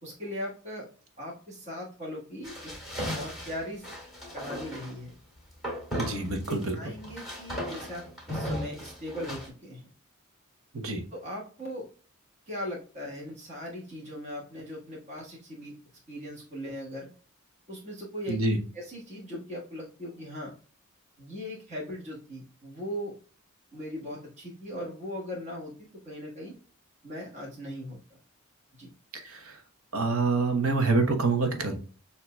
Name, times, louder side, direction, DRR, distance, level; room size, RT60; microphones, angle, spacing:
voice 1, 0.0-0.9 1.2-2.7 3.1-3.9 4.3-5.1 5.9-6.0 6.5-9.9 11.1-11.9 12.5-15.7 16.1-17.1 17.7-18.4 18.7-20.5 21.2-23.1 23.7-26.5 27.0-28.0 28.8-28.9, equal, 35° right, -5 dB, 1.5 m, -39 dB
sound 1, 2.4-5.0 5.6-6.7 7.0-9.5, equal, ahead, 2.2 m, -36 dB
voice 2, 6.0-6.8 10.7-11.0 18.3-18.6 29.1-29.6 29.9-31.8, right 3 dB, 75° right, 4 dB, 1.0 m, -26 dB
6.9 x 2.8 x 2.2 m, 0.40 s
head